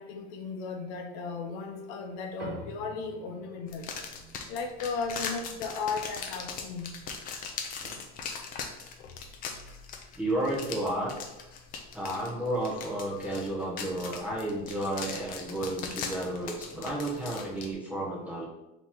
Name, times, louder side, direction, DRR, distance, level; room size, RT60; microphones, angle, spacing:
voice 1, 0.0-3.9 4.5-7.0, left 4 dB, 60° left, 4 dB, 0.7 m, -35 dB
sound 1, 2.4-7.1, right 2 dB, 55° right, 1.3 m, -48 dB
sound 2, 3.7-17.7, left 5 dB, 25° left, 0.4 m, -40 dB
voice 2, 10.2-11.1 11.9-18.5, right 1 dB, 5° right, -5 dB, 0.7 m, -32 dB
3.6 x 2.9 x 4.3 m, 0.96 s
supercardioid pair, 150°, 35 cm